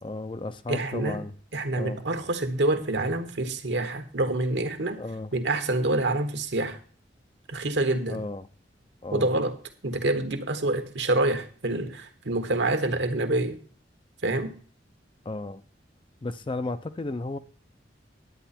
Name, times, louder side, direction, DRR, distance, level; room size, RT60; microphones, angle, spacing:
voice 1, 0.0-1.3 1.7-2.0 5.0-5.3 8.1-8.5 9.0-9.3 15.3-15.6 16.2-17.4, left 2 dB, 30° left, 0.5 m, -34 dB
voice 2, 0.7-1.2 1.5-5.0 5.3-6.8 7.5-8.2 9.1-9.6 9.8-13.6 14.2-14.5, right 2 dB, 70° right, 1.3 m, -27 dB
10.5 x 8.9 x 4.3 m
head